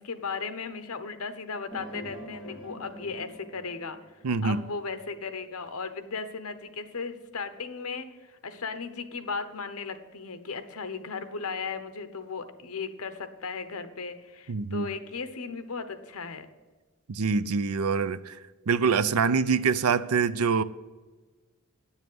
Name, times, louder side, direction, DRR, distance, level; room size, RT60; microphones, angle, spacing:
voice 1, 0.0-4.0 4.4-16.5, left 4 dB, 80° left, 10 dB, 1.0 m, -36 dB
sound 1, 1.7-4.5, equal, ahead, 2.0 m, -44 dB
voice 2, 4.2-4.6 14.5-14.9 17.1-18.4 18.7-20.6, right 5 dB, 85° right, 16 dB, 0.5 m, -25 dB
9.6 x 7.2 x 7.8 m, 1.3 s
head